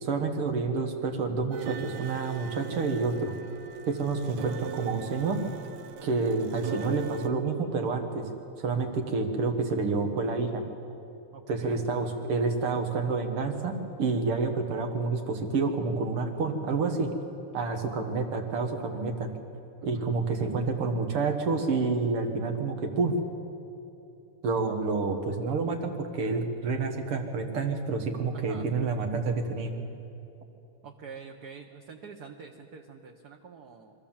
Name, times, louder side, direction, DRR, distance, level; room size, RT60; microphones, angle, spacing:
voice 1, 0.0-3.3 3.9-5.4 6.0-8.3 8.6-10.6 11.5-17.1 17.5-19.3 19.8-23.2 24.4-29.7, right 4 dB, 90° right, 4 dB, 2.5 m, -28 dB
sound 1, 1.5-7.3, right 8 dB, 70° right, 1.6 m, -41 dB
voice 2, 11.3-11.8 19.8-20.1 28.3-28.7 30.8-33.9, right 6 dB, 55° right, 1 dB, 1.4 m, -46 dB
24.5 x 14.5 x 7.3 m, 2.8 s
omnidirectional pair, 2.4 m